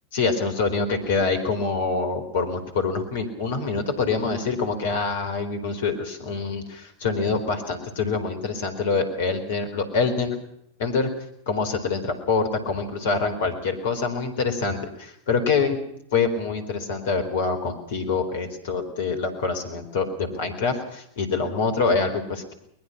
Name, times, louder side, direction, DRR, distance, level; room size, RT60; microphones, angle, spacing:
voice 1, 0.1-10.4 10.8-11.1 11.5-15.8 16.1-22.5, left 4 dB, 55° left, 7 dB, 4.2 m, -25 dB
22.5 x 20.5 x 5.9 m, 0.74 s
figure-of-eight pair, 90°, 0 cm